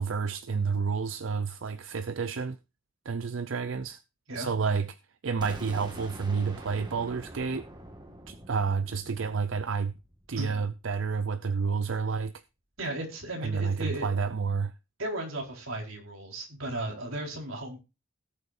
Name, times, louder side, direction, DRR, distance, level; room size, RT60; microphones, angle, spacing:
voice 1, 0.0-2.6 3.1-4.0 4.4-5.0 5.2-7.7 8.3-9.9 10.3-12.3 13.4-14.7, right 5 dB, 70° right, 0.6 m, -30 dB
sound 1, 5.4-11.2, right 1 dB, 20° right, 1.8 m, -46 dB
voice 2, 12.8-14.1 15.0-17.8, right 1 dB, 90° right, 4.4 m, -35 dB
18.0 x 8.2 x 2.6 m
head